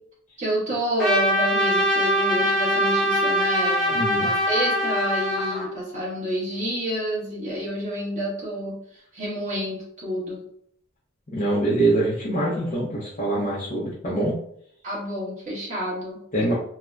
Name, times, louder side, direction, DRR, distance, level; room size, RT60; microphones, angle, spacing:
voice 1, 0.4-8.8 9.1-10.4 14.8-16.2 16.5-16.6, equal, 35° right, -7 dB, 1.4 m, -29 dB
Trumpet, 1.0-5.7, equal, ahead, 0.8 m, -22 dB
voice 2, 3.9-4.3 11.3-14.3 16.3-16.5, right 2 dB, 35° left, -6 dB, 0.6 m, -24 dB
3.1 x 2.1 x 2.4 m, 0.68 s
head